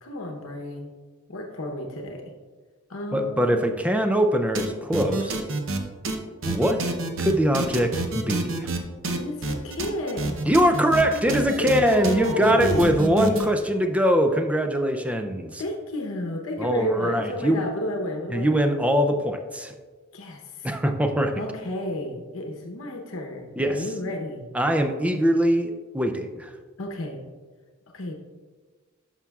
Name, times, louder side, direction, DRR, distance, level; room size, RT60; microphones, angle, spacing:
voice 1, 0.0-0.9 1.3-2.3 2.9-3.7 9.1-10.4 11.5-13.0 15.6-18.6 20.1-20.7 21.4-24.5 26.8-27.2 27.9-28.1, left 1 dB, 75° left, 1 dB, 0.9 m, -31 dB
voice 2, 3.1-5.4 6.5-6.8 7.2-8.7 10.5-15.6 16.6-17.7 18.3-19.7 20.6-21.4 23.6-23.8 24.5-26.5, equal, 5° right, 6 dB, 0.4 m, -22 dB
sound 1, 4.5-4.7 4.9-5.8 6.0-6.2 6.4-8.8 9.0-13.5, right 2 dB, 65° right, 0.8 m, -28 dB
11.0 x 5.9 x 2.3 m, 1.4 s
head